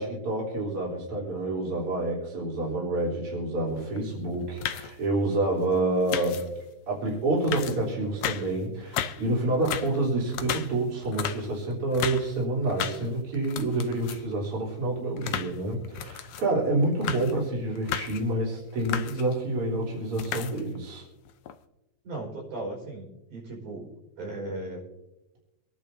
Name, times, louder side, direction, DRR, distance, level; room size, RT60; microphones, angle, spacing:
voice 1, 0.0-6.4 6.9-21.0, right 2 dB, 45° right, -5 dB, 4.5 m, -28 dB
sound 1, 3.8-4.0 4.3-5.0 6.1-6.6 7.1-7.2 7.4-8.5 8.8-9.3 9.5-12.3 12.6-13.1 13.3-14.3 14.7-16.5 16.8-17.4 17.7-18.2 18.7-19.3 19.9-20.8 21.3-21.6, left 10 dB, 75° left, 1.4 m, -34 dB
voice 2, 22.0-23.9 24.2-24.8, right 2 dB, 80° right, -3 dB, 6.5 m, -37 dB
26.0 x 10.5 x 2.7 m, 0.97 s
omnidirectional pair, 3.5 m